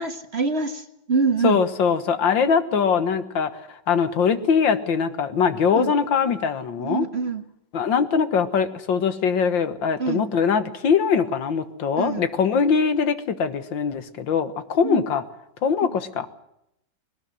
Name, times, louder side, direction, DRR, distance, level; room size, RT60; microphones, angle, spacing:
voice 1, 0.0-1.6 5.7-5.9 6.8-7.4 10.0-10.3 12.0-12.3 14.8-15.0 15.8-15.9, right 4 dB, 40° right, 8 dB, 1.4 m, -25 dB
voice 2, 1.4-7.1 7.7-15.2 15.6-16.3, left 6 dB, 75° left, 11 dB, 2.1 m, -22 dB
21.0 x 18.5 x 7.8 m, 0.80 s
omnidirectional pair, 2.1 m